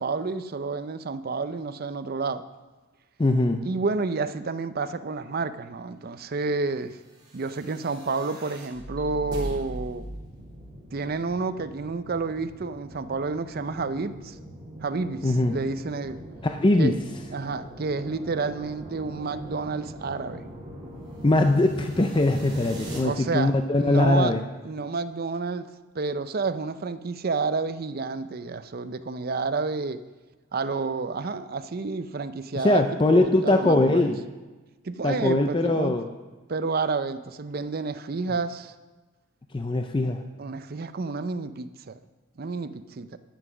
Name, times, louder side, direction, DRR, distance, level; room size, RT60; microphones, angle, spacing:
voice 1, 0.0-2.4 3.6-7.0 7.3-10.0 10.9-14.4 14.8-16.2 16.8-16.9 17.3-20.5 23.0-23.5 23.8-24.3 24.6-25.7 25.9-30.0 30.5-34.1 34.8-36.0 36.5-38.7 40.4-42.0 42.4-43.2, right 4 dB, 45° right, 12 dB, 0.5 m, -30 dB
voice 2, 3.2-3.6 15.2-15.6 16.4-16.9 21.2-24.4 32.6-34.2 35.0-36.1 39.5-40.2, left 2 dB, 25° left, 6 dB, 0.5 m, -21 dB
sound 1, 7.2-23.0, right 1 dB, 20° right, 3.1 m, -40 dB
11.5 x 7.9 x 6.1 m, 1.2 s
head